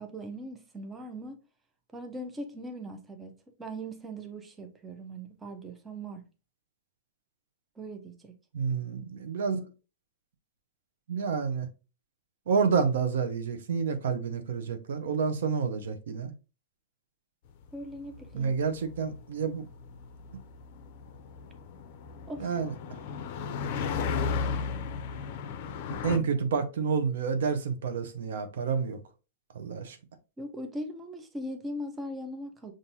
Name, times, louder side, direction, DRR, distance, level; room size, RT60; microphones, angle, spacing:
voice 1, 0.0-1.4 1.9-6.2 7.8-8.3 17.7-18.6 22.3-22.5 26.1-26.2 30.4-32.7, right 1 dB, 10° right, 0.6 m, -40 dB
voice 2, 8.5-9.7 11.1-11.7 12.5-16.3 18.3-19.7 22.4-22.7 25.9-29.0 29.5-30.0, right 5 dB, 80° right, 0.7 m, -29 dB
sound 1, 17.7-26.2, left 5 dB, 50° left, 0.5 m, -35 dB
5.5 x 2.5 x 2.7 m
hypercardioid pair, 140°, 0 cm